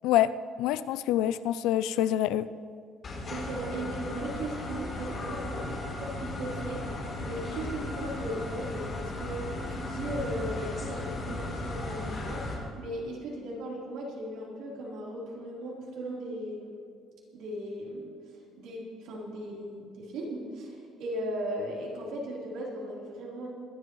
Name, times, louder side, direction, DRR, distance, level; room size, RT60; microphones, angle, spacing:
voice 1, 0.0-2.5, left 12 dB, 90° left, 0.4 m, -26 dB
sound 1, 3.0-12.5, left 2 dB, 30° left, 3.2 m, -36 dB
voice 2, 3.3-6.8 7.2-12.4 12.8-16.7 17.3-18.1 18.6-23.5, right 1 dB, 75° right, 3.8 m, -37 dB
24.0 x 11.5 x 3.2 m
cardioid pair, 165°, 0 cm